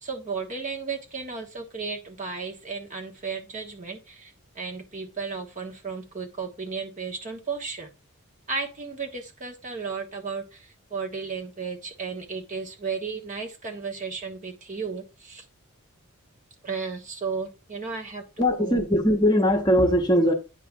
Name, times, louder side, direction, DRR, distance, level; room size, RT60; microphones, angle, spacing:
voice 1, 0.0-7.9 8.5-15.4 16.6-18.8, right 5 dB, 35° right, 1.2 m, -34 dB
voice 2, 18.4-20.3, equal, 20° left, 1.0 m, -20 dB
9.3 x 3.1 x 6.0 m
head